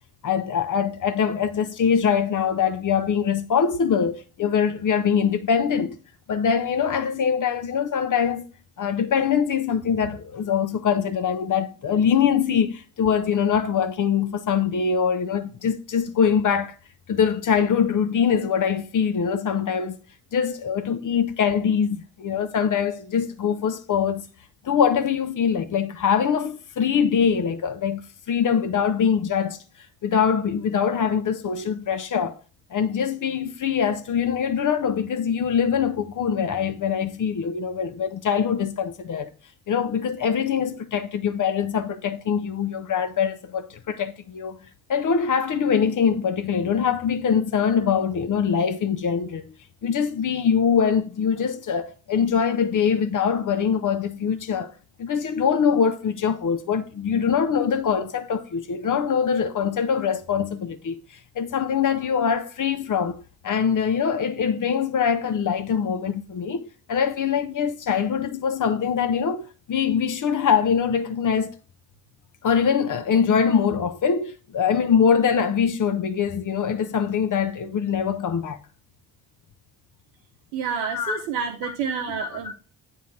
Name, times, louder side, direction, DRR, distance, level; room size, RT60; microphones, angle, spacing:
voice 1, 0.2-6.0 6.3-8.4 8.8-16.7 17.1-20.0 20.3-24.3 24.6-29.6 30.0-32.4 32.7-39.3 39.7-44.6 44.9-49.5 49.8-54.7 55.0-61.0 61.4-71.5 72.4-78.6 80.9-81.2 81.6-81.7 82.1-82.5, left 7 dB, 40° left, 0.6 m, -23 dB
voice 2, 80.5-82.5, right 6 dB, 80° right, 0.7 m, -29 dB
8.2 x 2.7 x 4.5 m
hypercardioid pair, 45°, 48 cm